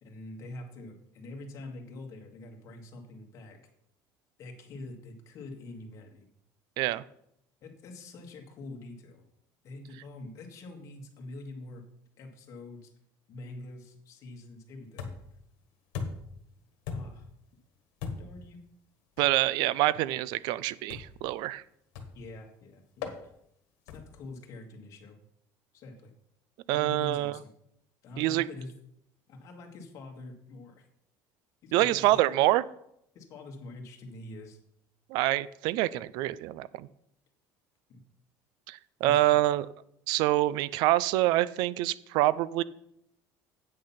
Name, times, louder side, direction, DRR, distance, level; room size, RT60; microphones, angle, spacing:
voice 1, 0.0-3.6 4.4-6.3 7.6-9.2 9.6-11.8 12.2-12.9 13.3-15.1 16.9-17.3 18.2-18.6 22.1-23.3 23.8-25.2 25.7-26.1 26.7-27.5 28.0-28.7 29.3-30.9 31.6-32.3 33.1-34.6 37.9-38.0 39.0-39.4, left 2 dB, 45° left, 2 dB, 1.7 m, -45 dB
sound 1, 15.0-15.4 15.9-16.4 16.9-17.3 18.0-18.4 19.2-19.4 20.9-21.3 22.0-22.3 23.0-23.2 23.9-24.2, left 5 dB, 85° left, 1.5 m, -38 dB
voice 2, 19.2-21.6 26.7-27.4 28.2-28.5 31.7-32.6 35.1-36.9 38.7-39.7 40.1-42.6, right 15 dB, 70° right, 19 dB, 0.4 m, -26 dB
8.7 x 6.4 x 5.7 m, 0.76 s
cardioid pair, 165°, 8 cm